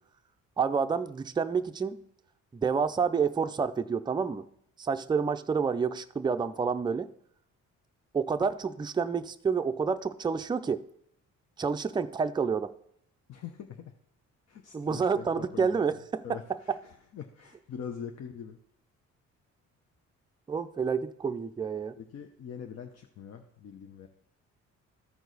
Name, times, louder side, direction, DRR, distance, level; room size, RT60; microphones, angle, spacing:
voice 1, 0.6-2.0 2.5-4.4 4.8-7.1 8.1-10.8 11.6-12.7 14.7-16.2 20.5-22.0, right 5 dB, 15° right, 9 dB, 0.4 m, -29 dB
voice 2, 13.3-13.9 14.5-18.6 22.0-24.1, left 7 dB, 55° left, 4 dB, 0.8 m, -43 dB
14.0 x 4.7 x 4.0 m, 0.71 s
cardioid pair, 90°, 30 cm